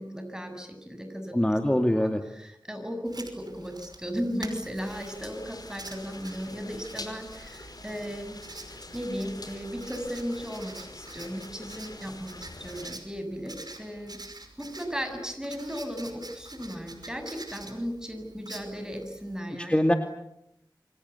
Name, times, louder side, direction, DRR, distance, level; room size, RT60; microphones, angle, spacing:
voice 1, 0.0-1.4 2.0-8.4 8.7-14.2 14.6-19.7, equal, 10° right, 6 dB, 7.4 m, -36 dB
voice 2, 1.3-2.2 19.6-19.9, left 1 dB, 15° left, 5 dB, 2.4 m, -23 dB
Writing, 3.0-19.4, right 2 dB, 60° right, 5.5 m, -47 dB
sound 1, 4.8-13.0, left 2 dB, 60° left, 5.0 m, -45 dB
28.5 x 24.5 x 8.4 m, 0.78 s
wide cardioid pair, 55°, 8 cm